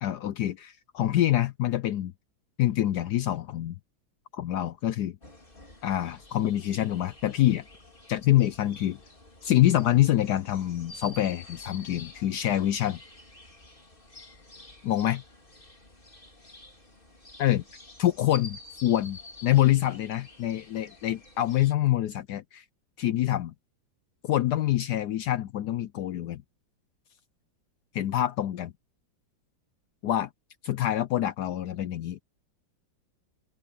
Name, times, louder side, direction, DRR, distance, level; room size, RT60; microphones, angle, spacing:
voice 1, 0.0-2.1 2.6-3.8 4.3-5.2 5.8-7.6 8.1-9.0 9.4-13.0 14.8-15.2 17.4-17.6 18.0-22.6 23.0-23.5 24.2-26.4 27.9-28.7 30.0-30.3 30.6-32.2, left 13 dB, 70° left, 1.0 m, -26 dB
sound 1, 5.2-21.7, left 2 dB, 25° left, 4.5 m, -49 dB
omnidirectional pair, 2.1 m